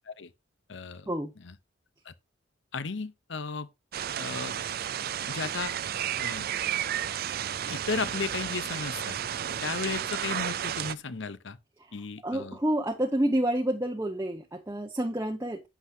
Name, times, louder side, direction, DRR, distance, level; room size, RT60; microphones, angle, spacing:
voice 1, 0.7-1.1 1.4-1.5 2.1-2.2 2.7-3.7 4.1-4.5 5.3-5.7 6.2-6.5 7.7-9.2 9.6-11.6 11.9-12.6, left 4 dB, 60° left, 0.8 m, -34 dB
sound 1, 3.9-11.0, right 10 dB, 50° right, 0.4 m, -32 dB
voice 2, 12.2-15.6, right 1 dB, 15° right, 1.0 m, -29 dB
11.0 x 8.2 x 2.8 m
head